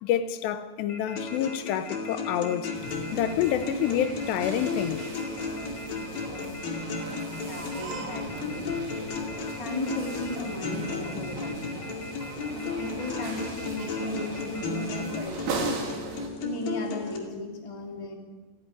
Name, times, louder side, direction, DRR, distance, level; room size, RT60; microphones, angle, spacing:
voice 1, 0.0-2.7 3.1-5.0, left 10 dB, 80° left, 3.1 m, -28 dB
Telephone, 0.9-15.2, left 2 dB, 25° left, 1.5 m, -43 dB
sound 1, 1.2-17.2, left 4 dB, 55° left, 3.9 m, -35 dB
sound 2, 2.7-16.3, right 3 dB, 75° right, 4.8 m, -38 dB
voice 2, 7.4-8.7 9.6-12.0 12.5-15.7 16.4-18.1, left 2 dB, 10° left, 1.8 m, -36 dB
29.5 x 10.0 x 9.9 m
omnidirectional pair, 4.9 m